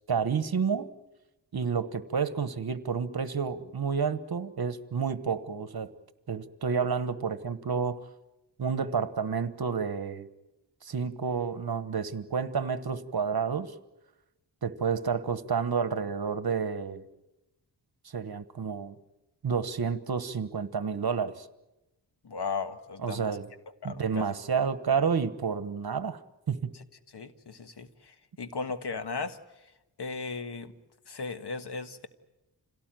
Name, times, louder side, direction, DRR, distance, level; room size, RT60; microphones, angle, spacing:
voice 1, 0.1-0.9 1.5-5.9 6.3-8.0 8.6-10.3 10.8-13.7 14.6-17.0 18.0-18.9 19.4-21.5 23.0-23.5 23.8-26.2 26.5-26.7, right 6 dB, 55° right, 13 dB, 1.3 m, -30 dB
voice 2, 22.2-23.3 23.8-24.3 26.7-26.8 27.1-29.4 30.0-30.7 31.1-32.1, left 4 dB, 65° left, 10 dB, 1.6 m, -36 dB
27.0 x 17.5 x 9.1 m, 0.99 s
wide cardioid pair, 70°, 43 cm